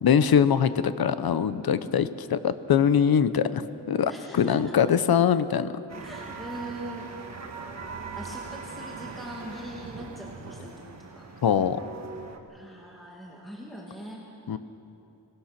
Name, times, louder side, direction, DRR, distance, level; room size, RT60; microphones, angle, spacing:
voice 1, 0.0-3.6 3.9-5.7 11.4-11.8 14.5-14.6, left 8 dB, 60° left, 13 dB, 0.7 m, -22 dB
voice 2, 4.1-4.8 6.0-7.1 8.2-10.8 11.1-11.3 12.5-14.2, right 1 dB, ahead, -4 dB, 2.1 m, -41 dB
sound 1, 5.9-12.4, right 4 dB, 40° right, 1.5 m, -40 dB
26.0 x 18.5 x 5.9 m, 2.9 s
wide cardioid pair, 170°, 42 cm